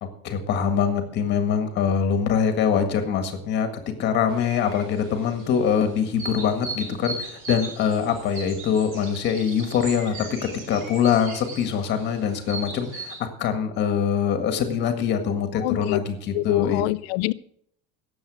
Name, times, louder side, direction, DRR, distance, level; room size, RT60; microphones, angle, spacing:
voice 1, 0.0-16.8, left 7 dB, 35° left, 7 dB, 1.8 m, -24 dB
sound 1, 4.3-13.2, right 2 dB, 40° right, 2.9 m, -38 dB
voice 2, 15.6-16.0 16.3-17.3, left 20 dB, 70° left, 17 dB, 0.6 m, -25 dB
17.0 x 7.4 x 6.3 m, 0.67 s
cardioid pair, 175°, 32 cm